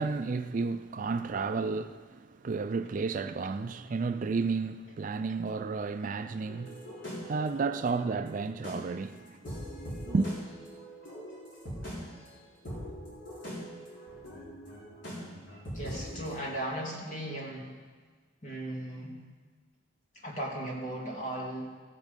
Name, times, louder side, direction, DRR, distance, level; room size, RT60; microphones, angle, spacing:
voice 1, 0.0-6.9 7.2-9.4 10.1-10.3, right 4 dB, 40° right, 0.4 m, -32 dB
sound 1, 6.5-16.4, equal, 70° left, 3.7 m, -42 dB
voice 2, 15.7-17.7 18.4-19.2 20.2-21.7, right 1 dB, 40° left, 2.5 m, -37 dB
15.0 x 8.5 x 5.2 m
head